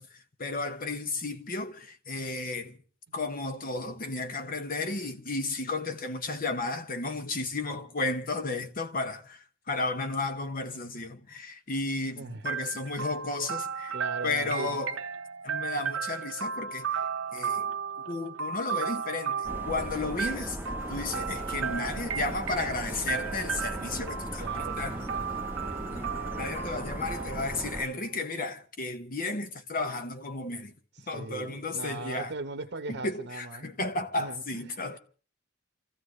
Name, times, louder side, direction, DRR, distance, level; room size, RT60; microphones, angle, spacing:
voice 1, 0.0-2.8 3.1-14.0 14.2-15.0 15.4-20.6 20.9-25.1 25.9-30.8 31.1-32.3 32.9-35.0, left 3 dB, 45° left, 1.3 m, -33 dB
voice 2, 12.2-12.5 13.9-14.8 24.4-25.7 30.9-33.7 34.2-34.9, right 2 dB, 60° right, 1.1 m, -40 dB
sound 1, 12.5-28.2, right 6 dB, 85° right, 1.0 m, -35 dB
sound 2, 19.4-27.8, right 1 dB, 10° right, 0.9 m, -38 dB
Bird, 20.8-26.9, left 3 dB, 80° left, 4.6 m, -52 dB
28.5 x 15.0 x 3.2 m
head